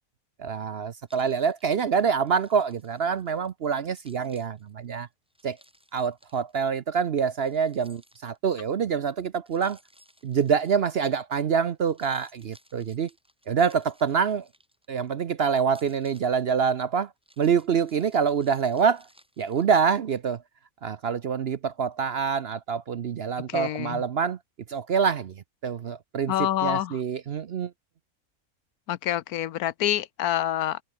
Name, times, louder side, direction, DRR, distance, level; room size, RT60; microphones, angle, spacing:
voice 1, 0.4-5.1 5.4-5.6 5.9-9.8 10.2-13.1 13.5-14.5 14.9-17.1 17.4-19.0 19.4-20.4 20.8-24.4 24.7-25.4 25.6-27.7, right 6 dB, 55° right, 0.8 m, -26 dB
Keys jangling, 1.1-3.5 3.9-6.6 7.4-8.6 9.5-11.3 11.7-15.1 15.6-20.2, equal, 5° right, 5.4 m, -60 dB
voice 2, 23.5-24.0 26.3-27.0 28.9-30.8, left 12 dB, 80° left, 1.2 m, -27 dB
omnidirectional pair, 1.6 m